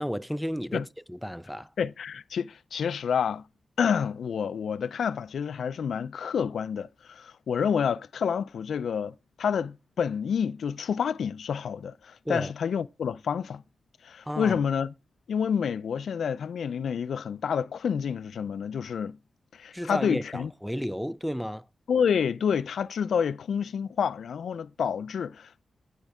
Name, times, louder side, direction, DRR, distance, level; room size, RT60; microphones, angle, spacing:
voice 1, 0.0-1.7 12.3-12.5 14.3-14.6 19.7-21.6, equal, ahead, 0.4 m, -32 dB
voice 2, 1.8-3.4 3.8-13.6 14.0-14.9 15.3-19.2 19.5-20.5 21.9-25.6, left 7 dB, 90° left, 0.4 m, -28 dB
15.5 x 5.3 x 3.6 m
wide cardioid pair, 130°, 0 cm